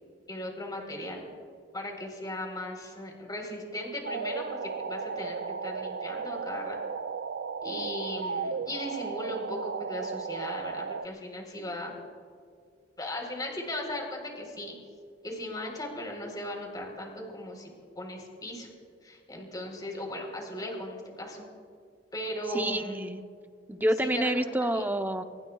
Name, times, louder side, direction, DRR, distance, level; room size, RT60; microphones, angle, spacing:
voice 1, 0.3-1.2 1.7-6.8 7.6-12.0 13.0-14.8 15.2-17.7 18.0-18.7 19.0-21.4 22.1-23.0 24.0-24.4 24.7-24.9, left 1 dB, 20° left, 1 dB, 3.9 m, -37 dB
sound 1, 4.0-11.1, right 5 dB, 70° right, 0.4 m, -35 dB
voice 2, 22.5-23.2 23.7-25.2, right 1 dB, 10° right, 7 dB, 0.7 m, -28 dB
24.5 x 22.0 x 2.4 m, 2.2 s
head